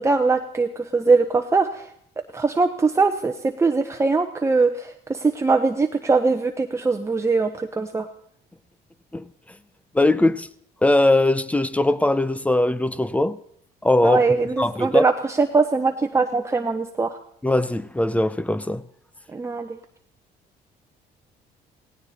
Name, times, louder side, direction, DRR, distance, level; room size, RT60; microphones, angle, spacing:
voice 1, 0.0-1.9 2.3-8.1 14.0-17.2 19.3-19.8, right 4 dB, 15° right, 1.0 m, -21 dB
voice 2, 9.9-10.5 10.8-13.4 13.8-14.2 14.6-15.0 17.4-18.8, left 1 dB, 10° left, 0.7 m, -20 dB
18.0 x 17.5 x 4.3 m
cardioid pair, 110°, 17 cm